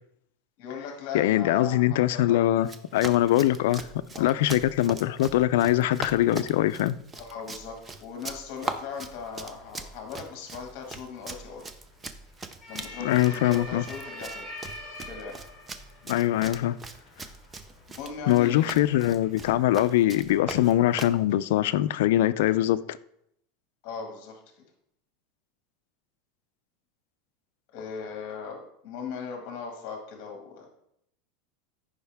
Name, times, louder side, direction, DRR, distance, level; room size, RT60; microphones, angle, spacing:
voice 1, 0.6-2.5 4.1-4.3 7.2-11.6 12.7-14.4 15.0-15.4 17.9-18.8 23.8-24.4 27.7-30.7, left 6 dB, 45° left, 1.8 m, -38 dB
voice 2, 1.1-3.9 4.2-7.0 13.0-13.8 16.1-16.8 18.3-23.0, left 14 dB, 75° left, 0.4 m, -23 dB
Run, 2.6-21.2, right 3 dB, 15° right, 0.6 m, -40 dB
sound 1, 8.6-19.9, left 1 dB, 5° left, 3.8 m, -46 dB
14.0 x 5.5 x 3.5 m
supercardioid pair, 160°, 0 cm